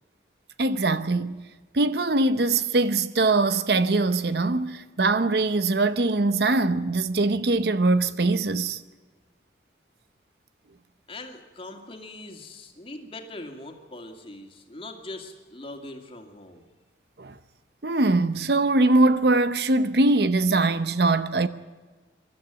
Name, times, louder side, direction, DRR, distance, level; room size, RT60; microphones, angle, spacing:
voice 1, 0.6-1.5 1.7-8.8 17.2-17.3 17.8-21.5, right 2 dB, 60° right, 0.8 m, -22 dB
voice 2, 11.1-16.7, left 2 dB, 30° left, 2.4 m, -41 dB
23.5 x 13.0 x 9.1 m
head